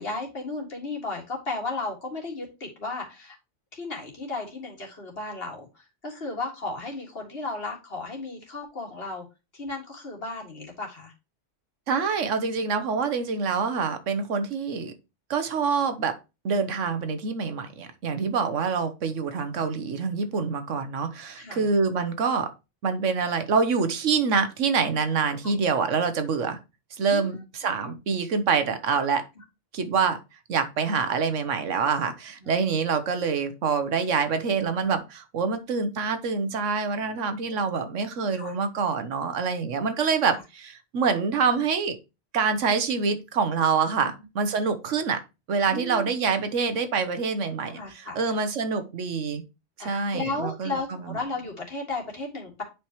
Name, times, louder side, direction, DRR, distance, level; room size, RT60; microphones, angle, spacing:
voice 1, 0.0-3.3 3.7-9.2 9.5-11.1 18.1-18.4 21.3-21.7 25.4-25.5 27.0-27.3 32.4-32.5 37.1-37.2 38.3-38.6 45.6-46.1 47.7-48.4 49.8-52.6, left 3 dB, 50° left, 1 dB, 2.2 m, -34 dB
voice 2, 11.9-14.9 15.3-16.2 16.4-22.5 22.8-26.6 27.0-29.2 29.7-30.2 30.5-42.0 42.3-45.2 45.5-49.4 49.8-51.0, right 5 dB, 75° right, 9 dB, 1.2 m, -26 dB
8.7 x 5.0 x 3.0 m, 0.27 s
omnidirectional pair, 1.3 m